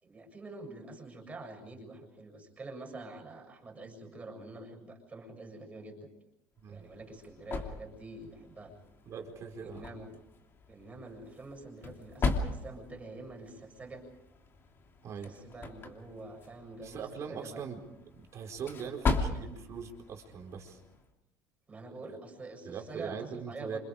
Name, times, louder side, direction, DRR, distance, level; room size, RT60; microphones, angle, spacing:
voice 1, 0.0-6.1 6.7-8.7 9.6-10.1 10.7-14.0 15.0-17.7 18.6-19.0 21.7-23.8, right 2 dB, 15° right, 2 dB, 7.1 m, -46 dB
sound 1, 6.6-21.1, left 4 dB, 30° left, 2.9 m, -39 dB
voice 2, 9.1-9.9 15.0-15.3 16.8-17.8 18.1-20.8 22.1-22.2 22.6-23.8, right 7 dB, 40° right, 3 dB, 4.5 m, -41 dB
28.5 x 27.5 x 5.1 m, 0.88 s
cardioid pair, 140°, 8 cm